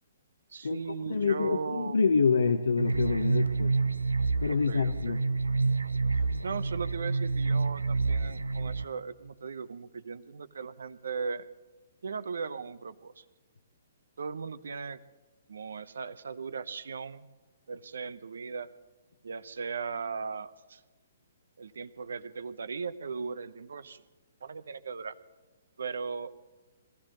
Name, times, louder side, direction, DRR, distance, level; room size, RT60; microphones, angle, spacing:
voice 1, 0.5-2.0 4.5-5.2 6.1-11.5 12.0-13.3 14.2-15.0 15.5-17.3 17.7-18.7 19.2-20.8 21.6-24.0 24.4-25.2 25.8-26.3, right 5 dB, 70° right, 14 dB, 0.8 m, -38 dB
voice 2, 1.1-3.7 4.4-5.2, left 5 dB, 75° left, 7 dB, 0.8 m, -26 dB
sound 1, 2.8-8.8, right 3 dB, 85° right, 0.5 m, -28 dB
21.5 x 15.5 x 3.9 m, 1.3 s
figure-of-eight pair, 130°, 0 cm